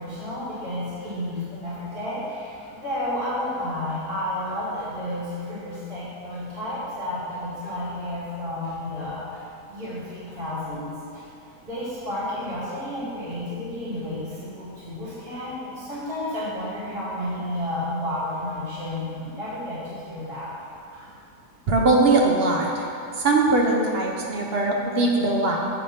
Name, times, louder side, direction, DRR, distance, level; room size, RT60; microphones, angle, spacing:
voice 1, 0.0-11.2 11.6-20.7 20.9-21.0, left 1 dB, 35° right, -11 dB, 2.0 m, -31 dB
voice 2, 21.7-22.9 23.2-25.6, right 2 dB, 60° right, 0 dB, 0.6 m, -21 dB
7.6 x 3.3 x 5.6 m, 2.5 s
omnidirectional pair, 1.7 m